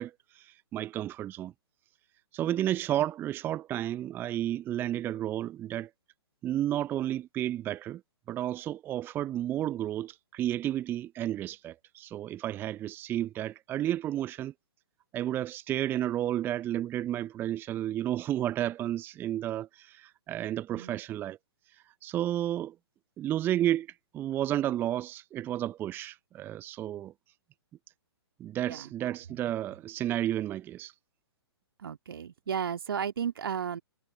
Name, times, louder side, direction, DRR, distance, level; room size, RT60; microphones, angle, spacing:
voice 1, 0.0-1.5 2.3-5.9 6.4-8.0 8.3-14.5 15.1-21.4 21.7-22.8 23.2-27.1 28.4-30.9, right 12 dB, 15° right, 0.6 m, -32 dB
voice 2, 28.7-29.2 31.8-33.8, right 8 dB, 55° right, 2.2 m, -34 dB
figure-of-eight pair, 120°, 14 cm